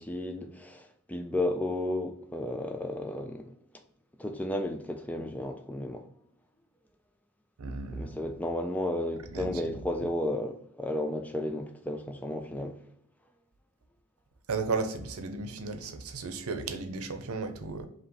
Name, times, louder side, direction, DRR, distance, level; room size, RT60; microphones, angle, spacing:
voice 1, 0.0-3.5 4.2-6.1 7.9-12.7, left 1 dB, 5° left, 0.4 m, -33 dB
voice 2, 7.6-8.2 9.3-9.6 14.5-17.9, right 4 dB, 80° right, 0.7 m, -34 dB
5.0 x 2.9 x 3.0 m
head